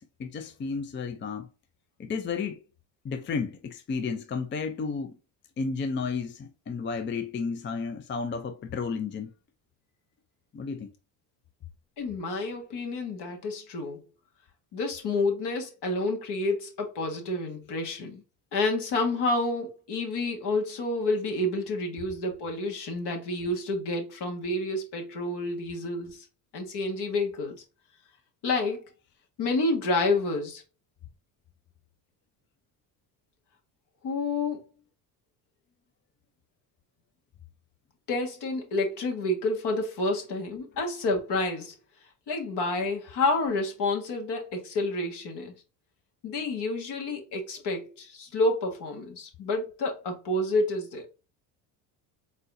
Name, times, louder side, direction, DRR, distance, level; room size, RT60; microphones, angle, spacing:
voice 1, 0.0-1.5 2.0-2.6 3.0-5.2 5.6-9.3 10.5-10.9, left 5 dB, 25° left, 0.5 m, -32 dB
voice 2, 12.0-14.0 14.7-18.2 18.5-26.2 26.5-27.6 28.4-28.8 29.4-30.6 34.0-34.6 38.1-41.7 42.3-45.5 46.2-51.1, left 2 dB, 60° left, 1.7 m, -29 dB
4.1 x 3.9 x 2.6 m
supercardioid pair, 90°, 45 cm